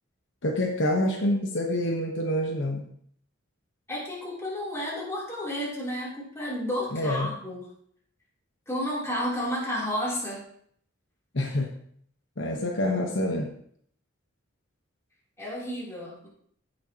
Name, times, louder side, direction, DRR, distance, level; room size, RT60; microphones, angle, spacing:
voice 1, 0.4-2.9 6.9-7.3 11.3-11.7 12.4-13.5, left 1 dB, 60° left, 1 dB, 1.1 m, -27 dB
voice 2, 3.9-7.7 8.7-10.4 15.4-16.3, equal, 15° left, -6 dB, 3.2 m, -31 dB
15.0 x 6.6 x 2.9 m, 0.64 s
head